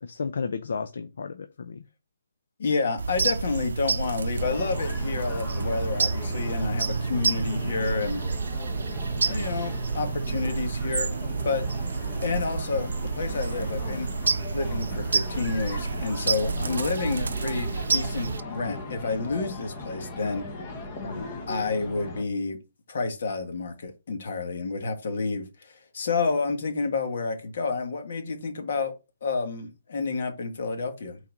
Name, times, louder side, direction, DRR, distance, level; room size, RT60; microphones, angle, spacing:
voice 1, 0.0-1.8 16.6-16.8 21.0-21.3, left 5 dB, 70° left, 0.6 m, -33 dB
voice 2, 2.6-8.2 9.3-11.1 11.4-11.6 12.2-14.1 14.5-20.4 21.5-22.6 22.9-28.9 29.2-31.2, left 4 dB, 55° left, 1.6 m, -29 dB
sound 1, 3.0-18.4, right 4 dB, 85° right, 0.5 m, -29 dB
sound 2, 4.4-22.2, left 2 dB, 25° left, 1.2 m, -38 dB
5.6 x 4.1 x 5.2 m
hypercardioid pair, 170°, 0 cm